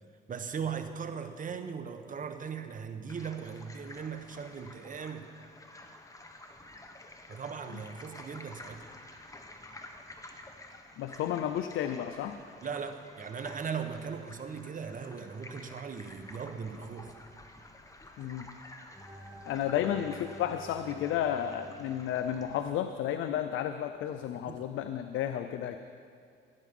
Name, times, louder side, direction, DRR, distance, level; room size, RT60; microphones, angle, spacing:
voice 1, 0.3-5.3 7.3-8.9 12.6-17.1 24.5-24.6, right 6 dB, 40° right, 8 dB, 1.1 m, -38 dB
sound 1, 3.1-22.7, left 1 dB, 15° left, 1.3 m, -51 dB
voice 2, 11.0-12.4 18.2-18.5 19.5-25.8, left 10 dB, 80° left, 8 dB, 0.6 m, -32 dB
sound 2, 18.9-23.0, right 1 dB, 5° right, 1.9 m, -51 dB
16.5 x 9.4 x 5.4 m, 2.3 s
cardioid pair, 90°, 20 cm